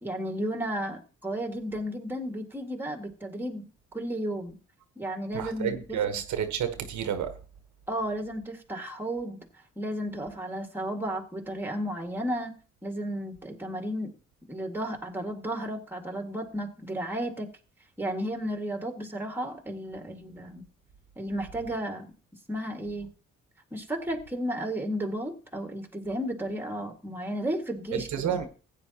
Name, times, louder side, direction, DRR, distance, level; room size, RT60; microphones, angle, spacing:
voice 1, 0.0-3.7 3.9-4.6 5.0-6.0 7.9-9.4 9.8-12.5 12.8-14.1 14.5-17.5 18.0-20.6 21.2-22.1 22.5-23.1 23.7-28.3, right 1 dB, 5° right, 1.9 m, -33 dB
voice 2, 5.3-7.3 27.9-28.5, right 9 dB, 70° right, 1.1 m, -30 dB
15.5 x 9.1 x 2.9 m
cardioid pair, 90°, 30 cm